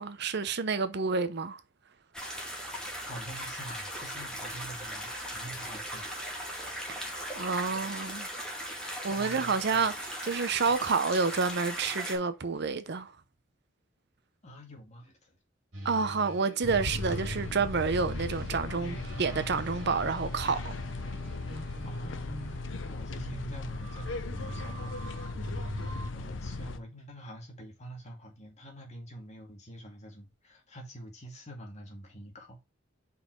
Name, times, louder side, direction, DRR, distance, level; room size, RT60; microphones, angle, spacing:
voice 1, 0.0-1.6 6.9-8.3 9.0-13.1 15.8-20.7, right 4 dB, 60° right, 0.7 m, -29 dB
sound 1, 2.1-12.2, equal, 5° left, 2.2 m, -38 dB
voice 2, 3.0-6.1 9.1-9.9 14.4-15.4 21.8-32.6, right 1 dB, 35° left, 2.2 m, -47 dB
sound 2, 15.7-26.1, right 1 dB, 80° right, 2.7 m, -42 dB
sound 3, 16.6-26.8, left 3 dB, 70° left, 0.7 m, -38 dB
5.4 x 4.7 x 4.5 m
head